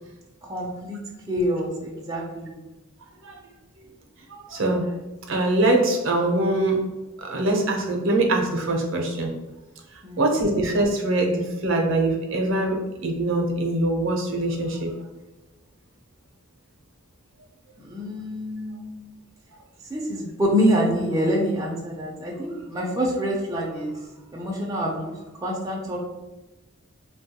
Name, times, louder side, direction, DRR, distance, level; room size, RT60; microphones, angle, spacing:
voice 1, 0.4-1.0 1.3-2.6 10.0-10.2 17.8-19.1 19.9-24.0 24.3-25.1 25.4-26.0, equal, 15° right, -2 dB, 0.4 m, -26 dB
voice 2, 4.5-4.9 5.3-6.8 7.2-9.3 10.2-14.9, right 2 dB, 65° right, 2 dB, 0.6 m, -23 dB
3.3 x 2.2 x 2.8 m, 1.1 s
head